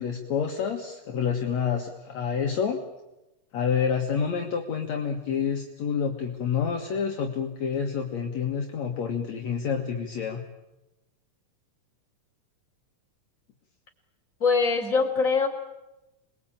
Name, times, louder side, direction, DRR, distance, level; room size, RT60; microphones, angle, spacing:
voice 1, 0.0-2.8 3.5-10.4, left 7 dB, 60° left, 2 dB, 2.7 m, -28 dB
voice 2, 14.4-15.5, left 4 dB, 25° left, 1 dB, 4.1 m, -22 dB
27.5 x 21.0 x 8.9 m, 0.98 s
omnidirectional pair, 3.7 m